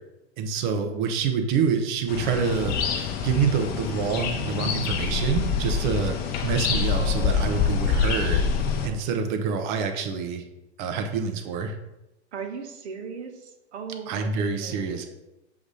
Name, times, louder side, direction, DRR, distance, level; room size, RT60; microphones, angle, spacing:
voice 1, 0.4-6.1 6.4-8.4 8.8-10.4 10.8-11.7 14.1-15.1, right 6 dB, 45° right, 6 dB, 0.8 m, -27 dB
sound 1, 2.1-8.9, left 6 dB, 30° left, 0.8 m, -26 dB
voice 2, 6.9-8.5 12.3-15.1, right 5 dB, 75° right, 5 dB, 1.2 m, -39 dB
7.2 x 2.7 x 4.8 m, 0.95 s
hypercardioid pair, 130°, 34 cm